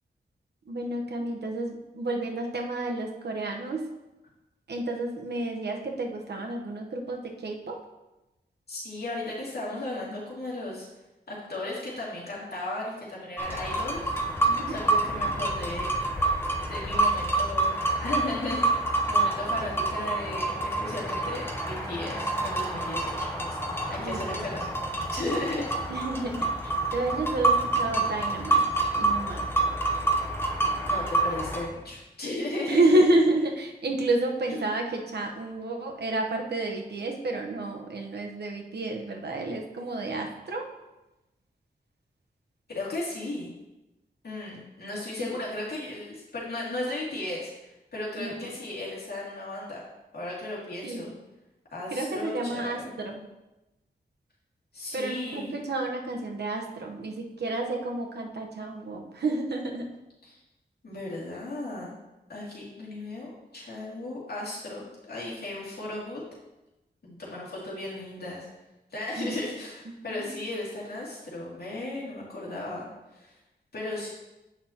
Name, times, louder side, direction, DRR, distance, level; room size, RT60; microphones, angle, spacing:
voice 1, 0.7-3.9 4.7-7.8 14.4-14.8 24.0-24.5 25.9-28.7 29.0-29.5 32.7-40.7 45.2-45.3 48.2-48.3 50.8-51.1 51.9-53.2 54.9-59.9 69.2-69.4 70.2-70.3, right 2 dB, 75° right, 2 dB, 1.0 m, -30 dB
voice 2, 8.7-10.9 11.3-14.1 14.7-15.9 16.7-23.3 23.7-24.8 25.1-25.7 30.9-33.0 34.5-34.7 42.7-43.5 44.2-49.8 50.1-51.1 51.7-53.2 54.7-55.6 60.2-60.4 60.8-62.0 62.3-66.2 67.0-68.5 68.9-72.9 73.1-73.3 73.7-74.1, left 2 dB, 70° left, -6 dB, 2.5 m, -35 dB
sound 1, 13.4-31.7, right 2 dB, 15° left, 0.8 m, -27 dB
8.6 x 5.9 x 2.9 m, 1.0 s
wide cardioid pair, 100°, 17 cm